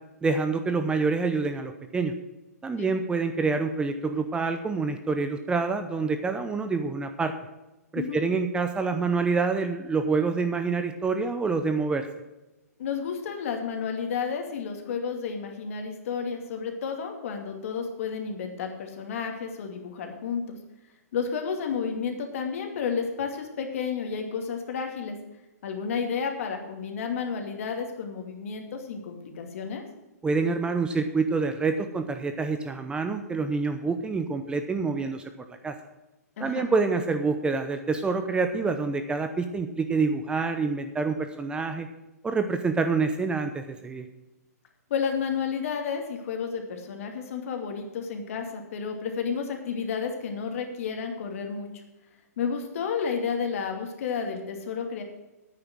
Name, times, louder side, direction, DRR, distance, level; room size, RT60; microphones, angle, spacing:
voice 1, 0.2-2.1 2.6-7.3 7.9-12.0 30.2-35.2 35.5-35.7 36.4-41.9 42.2-44.1, right 4 dB, 10° right, 8 dB, 0.8 m, -27 dB
voice 2, 7.9-8.2 12.8-20.6 21.1-25.2 25.6-29.8 36.4-36.7 44.9-51.8 52.4-55.0, left 6 dB, 55° left, 4 dB, 2.6 m, -31 dB
10.0 x 9.3 x 6.2 m, 1.0 s
hypercardioid pair, 130°, 9 cm